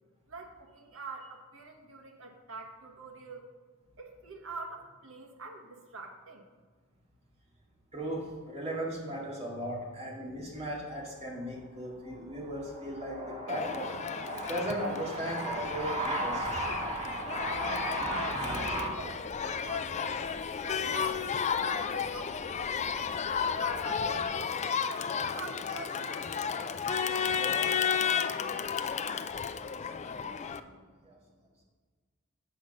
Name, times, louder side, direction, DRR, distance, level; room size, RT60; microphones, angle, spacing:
voice 1, 0.3-3.5 4.0-6.4 17.8-22.9 23.4-24.6 25.3-26.3 26.9-28.4, right 3 dB, 70° right, 3 dB, 1.3 m, -46 dB
voice 2, 7.9-18.9 30.6-30.8 31.0-31.2, right 1 dB, 30° right, -3 dB, 2.3 m, -35 dB
Crowd, 13.5-30.6, left 6 dB, 35° left, 0.4 m, -33 dB
sound 1, 15.5-24.3, right 1 dB, 20° left, 3.0 m, -52 dB
8.5 x 5.1 x 6.5 m, 1.5 s
head